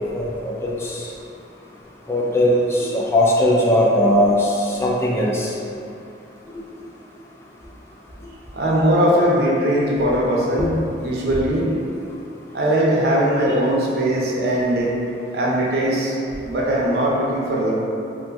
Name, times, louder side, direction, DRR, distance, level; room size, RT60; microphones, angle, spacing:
voice 1, 0.1-1.0 2.1-5.5 6.5-6.6 10.6-10.7, left 1 dB, 15° left, -5 dB, 0.3 m, -19 dB
voice 2, 8.5-10.7 11.0-11.7 12.5-15.0 15.3-16.1 16.4-17.7, right 1 dB, 60° right, -4 dB, 0.5 m, -20 dB
2.5 x 2.3 x 3.9 m, 2.5 s
head